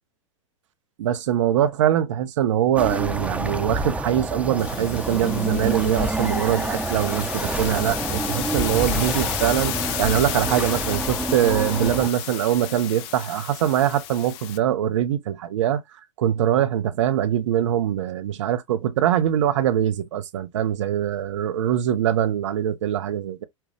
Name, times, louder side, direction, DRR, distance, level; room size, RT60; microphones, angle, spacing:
voice 1, 1.0-15.8 16.2-23.4, right 11 dB, 65° right, 0.9 m, -23 dB
sound 1, 2.8-12.1, right 2 dB, 5° right, 0.8 m, -28 dB
sound 2, 4.6-14.6, left 12 dB, 50° left, 0.7 m, -32 dB
5.9 x 2.4 x 3.2 m
hypercardioid pair, 95°, 17 cm